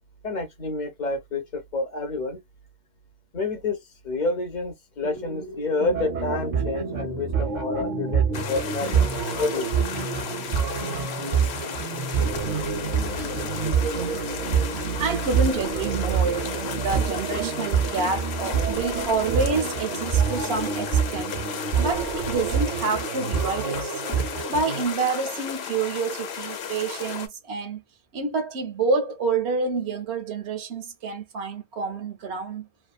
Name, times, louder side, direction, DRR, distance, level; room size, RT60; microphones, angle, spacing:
voice 1, 0.2-2.4 3.3-9.1 9.4-9.7, left 3 dB, 50° left, 0.8 m, -29 dB
sound 1, 5.0-12.4, right 2 dB, 5° left, 0.4 m, -37 dB
sound 2, 5.9-24.8, right 7 dB, 55° right, 0.6 m, -27 dB
sound 3, 8.3-27.3, left 7 dB, 85° left, 0.9 m, -34 dB
voice 2, 14.7-21.4 21.8-24.0 24.5-27.8 28.1-32.7, right 4 dB, 90° right, 0.9 m, -28 dB
2.6 x 2.3 x 2.3 m
omnidirectional pair, 1.0 m